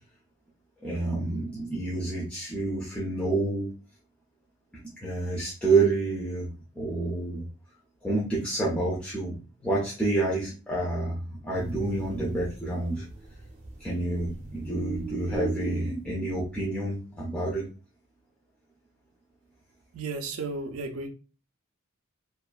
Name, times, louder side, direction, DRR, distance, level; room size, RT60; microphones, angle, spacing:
voice 1, 0.8-3.7 5.0-7.5 8.0-9.4 9.6-13.0 13.8-17.7, right 2 dB, 5° left, 0.6 m, -28 dB
sound 1, 11.5-16.5, right 3 dB, 35° right, 0.6 m, -39 dB
voice 2, 19.9-21.1, right 3 dB, 70° right, 0.4 m, -33 dB
2.8 x 2.3 x 2.3 m
head